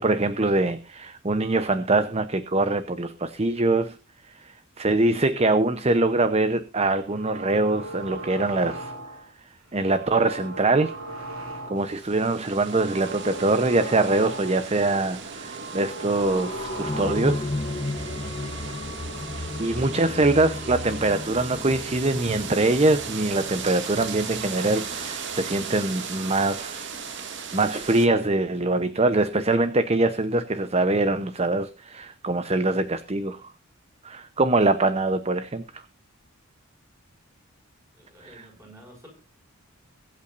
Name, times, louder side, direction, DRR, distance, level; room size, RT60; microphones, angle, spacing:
voice 1, 0.0-4.0 4.4-8.9 9.7-10.9 11.7-17.5 19.3-26.9 27.5-33.4 34.0-35.6 38.2-38.5, right 2 dB, 30° right, 11 dB, 0.8 m, -23 dB
sound 1, 7.0-9.3 9.7-12.0 12.4-14.7 15.1-17.5, right 2 dB, 85° right, 4.2 m, -38 dB
sound 2, 11.8-28.1, right 6 dB, 55° right, 2.1 m, -37 dB
sound 3, 16.2-25.6 25.9-26.0, left 2 dB, 25° left, 0.9 m, -35 dB
voice 2, 38.0-39.1, equal, 15° right, 1 dB, 6.3 m, -50 dB
22.5 x 8.5 x 2.5 m, 0.29 s
head